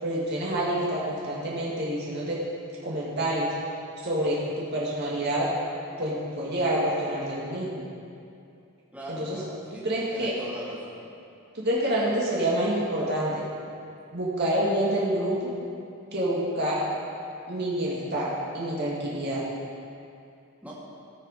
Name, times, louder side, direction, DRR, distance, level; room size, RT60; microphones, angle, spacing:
voice 1, 0.0-2.4 2.8-3.5 4.0-5.5 6.0-7.9 9.1-9.4 9.8-10.3 11.5-13.4 14.1-15.5 16.1-16.8 17.5-19.4, right 1 dB, 50° right, -6 dB, 2.3 m, -27 dB
voice 2, 8.9-9.8 10.1-11.0 20.6-20.7, equal, 5° right, -7 dB, 2.5 m, -40 dB
18.5 x 7.0 x 5.0 m, 2.6 s
head